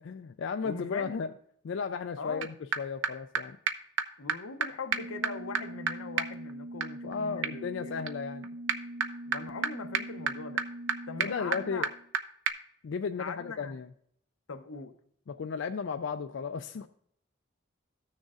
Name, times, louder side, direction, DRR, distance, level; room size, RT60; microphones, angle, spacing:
voice 1, 0.0-1.3 1.6-3.6 7.0-8.4 11.2-11.9 12.8-13.9 15.3-16.9, left 5 dB, 60° left, 0.3 m, -34 dB
voice 2, 0.6-1.2 2.2-2.5 4.2-7.9 9.3-10.6 11.1-11.9 13.2-13.8 14.5-14.9, left 4 dB, 90° left, 0.7 m, -41 dB
sound 1, 2.4-2.5 2.7-2.8 3.0-3.1 3.4-3.5 3.7-3.8 4.0-4.1 4.3-4.4 4.6-4.7 4.9-12.2 12.5-12.6, right 6 dB, 70° right, 0.5 m, -33 dB
14.5 x 6.3 x 2.4 m
head